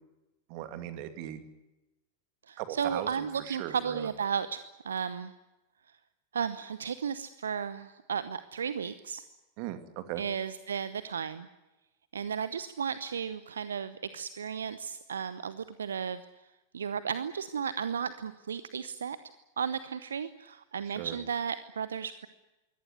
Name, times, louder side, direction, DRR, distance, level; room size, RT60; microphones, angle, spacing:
voice 1, 0.5-1.4 2.6-4.1 9.6-10.2 20.9-21.2, right 12 dB, 45° right, 9 dB, 2.6 m, -38 dB
voice 2, 2.5-5.3 6.3-9.2 10.2-11.5 12.1-16.2 16.7-19.2 19.6-22.3, right 7 dB, 70° right, 14 dB, 0.9 m, -34 dB
23.5 x 17.5 x 9.6 m, 1.0 s
figure-of-eight pair, 90°, 0 cm